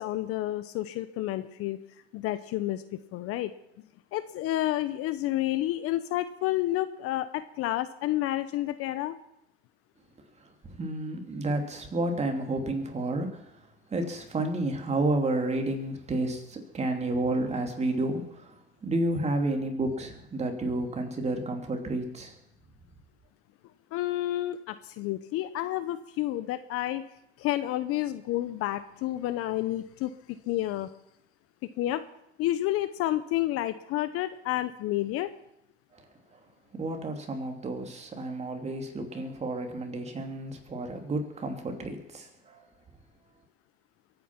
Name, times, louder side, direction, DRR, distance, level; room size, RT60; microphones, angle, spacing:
voice 1, 0.0-1.8 2.1-3.5 4.1-9.2 23.9-27.0 27.4-30.9 31.8-32.0 32.4-35.3, left 14 dB, 45° left, 13 dB, 0.8 m, -30 dB
voice 2, 10.8-13.6 13.9-18.6 18.8-22.3 35.9-36.0 36.3-36.4 36.7-42.6, right 2 dB, 20° right, 4 dB, 2.8 m, -31 dB
22.5 x 9.4 x 5.9 m, 0.82 s
supercardioid pair, 115°, 33 cm